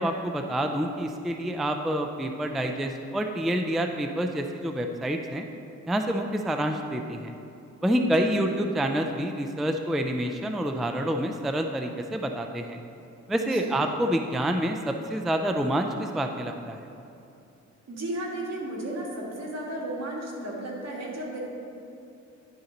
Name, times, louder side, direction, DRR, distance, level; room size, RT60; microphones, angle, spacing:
voice 1, 0.0-5.5 5.9-7.3 7.8-12.8 13.3-16.8, right 1 dB, ahead, 4 dB, 0.3 m, -27 dB
voice 2, 8.2-8.6 13.5-13.7 17.9-21.4, right 1 dB, 60° right, -3 dB, 1.7 m, -34 dB
10.5 x 4.1 x 3.9 m, 2.7 s
cardioid pair, 85°, 29 cm